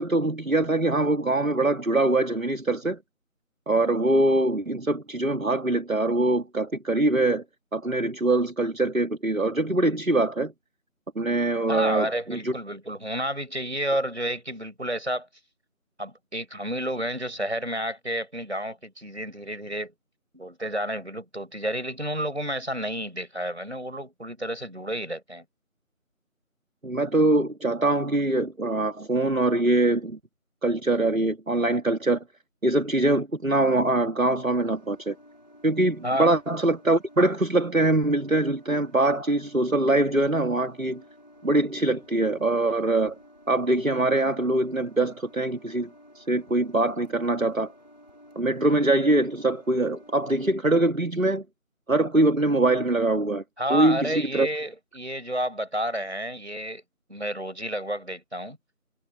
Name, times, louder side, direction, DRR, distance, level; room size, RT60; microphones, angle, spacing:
voice 1, 0.0-3.0 3.7-7.4 7.7-10.5 11.2-12.5 26.8-30.2 30.6-32.2 32.6-35.2 35.6-41.0 41.4-43.2 43.5-45.9 46.2-47.7 48.4-51.4 51.9-53.4 53.7-54.5, right 2 dB, 70° right, 2.0 m, -23 dB
voice 2, 11.7-15.3 16.0-19.9 20.3-25.4 36.0-36.3 53.6-56.8 57.1-58.6, equal, 50° right, 5.4 m, -30 dB
sound 1, 34.3-50.6, equal, 30° left, 5.1 m, -53 dB
figure-of-eight pair, 180°, 42 cm